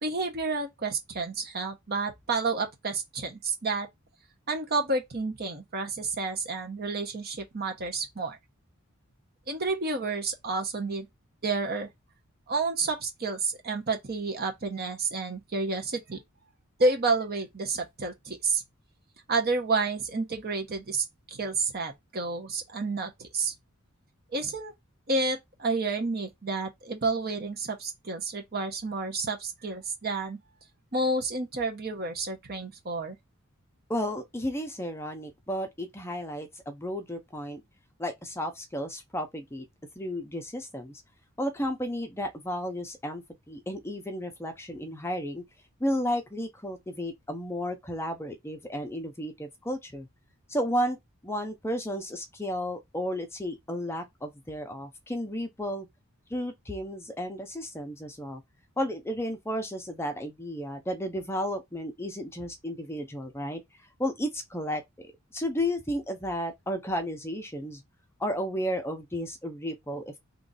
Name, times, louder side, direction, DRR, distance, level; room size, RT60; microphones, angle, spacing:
voice 1, 0.0-3.9 4.5-8.4 9.5-11.1 11.4-11.9 12.5-16.2 16.8-18.6 19.3-23.5 24.3-24.7 25.1-30.4 30.9-33.2, right 3 dB, 50° right, 1.0 m, -30 dB
voice 2, 33.9-37.6 38.0-39.6 40.0-41.0 41.4-45.4 45.8-50.1 50.5-51.0 51.2-55.9 56.3-58.4 58.8-63.6 64.0-67.8 68.2-70.2, equal, 10° left, 0.6 m, -33 dB
3.0 x 2.6 x 3.9 m
head